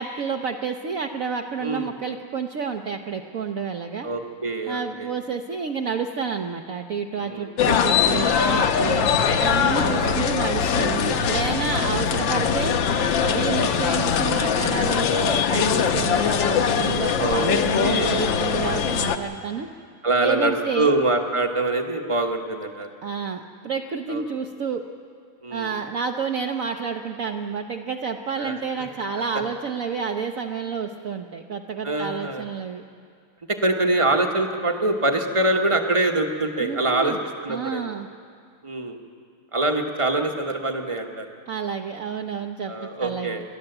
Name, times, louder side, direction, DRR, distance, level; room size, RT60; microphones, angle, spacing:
voice 1, 0.0-4.1 4.7-9.1 9.4-12.8 13.2-19.7 20.2-20.9 23.0-24.9 25.5-32.8 36.6-37.2 37.5-38.1 41.5-43.4, right 6 dB, 75° right, 3 dB, 0.7 m, -29 dB
voice 2, 1.6-1.9 4.0-5.1 7.2-7.5 10.0-10.2 11.8-12.0 17.2-18.2 20.0-22.9 24.1-24.2 25.4-25.7 28.4-28.6 31.8-32.5 33.5-37.1 37.4-37.8 38.6-39.0 39.5-41.3 42.7-43.4, right 2 dB, 30° right, 4 dB, 0.6 m, -24 dB
sound 1, 7.6-19.2, left 7 dB, 65° left, 1.5 m, -22 dB
30.0 x 11.5 x 7.9 m, 2.2 s
omnidirectional pair, 2.4 m